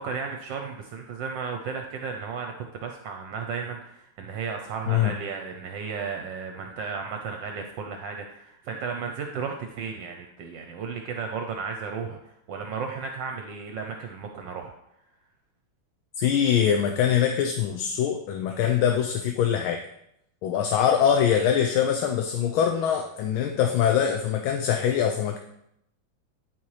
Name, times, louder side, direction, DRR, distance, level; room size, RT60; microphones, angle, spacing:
voice 1, 0.0-12.2 12.5-14.7, right 5 dB, 75° right, 4 dB, 1.3 m, -34 dB
voice 2, 16.2-19.8 20.4-25.4, left 8 dB, 90° left, 4 dB, 1.5 m, -23 dB
12.0 x 4.4 x 3.2 m, 0.78 s
omnidirectional pair, 2.2 m